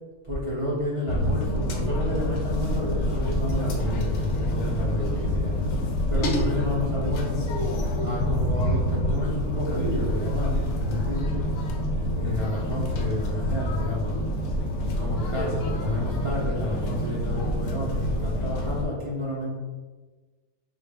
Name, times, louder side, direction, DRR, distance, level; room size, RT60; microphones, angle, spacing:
voice 1, 0.2-7.5 8.0-11.4 12.1-14.2 14.8-19.5, left 1 dB, 40° right, -7 dB, 0.4 m, -30 dB
sound 1, 1.1-18.8, left 1 dB, 70° left, 1.0 m, -27 dB
3.7 x 2.4 x 3.3 m, 1.3 s
omnidirectional pair, 1.5 m